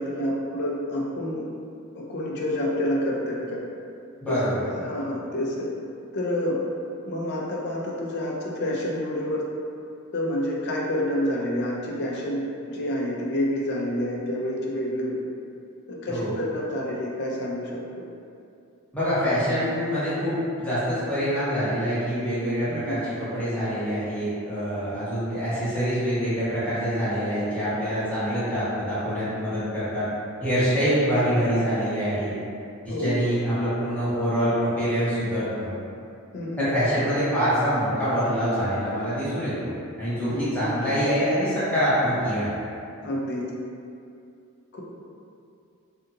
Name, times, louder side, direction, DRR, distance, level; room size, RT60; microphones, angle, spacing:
voice 1, 0.0-1.4 1.9-3.6 4.3-5.7 6.1-6.6 7.1-9.4 10.1-15.2 15.9-18.0 22.7-23.0 30.8-30.9 32.9-33.2 36.3-36.7 40.3-40.5 43.0-43.4 44.7-44.8, left 1 dB, 50° left, -3 dB, 0.4 m, -28 dB
voice 2, 4.2-4.6 16.1-16.3 18.9-30.1 30.4-32.3 32.8-35.7 36.6-39.7 40.0-42.5, equal, 5° left, -14 dB, 1.0 m, -25 dB
2.7 x 2.5 x 2.4 m, 2.5 s
head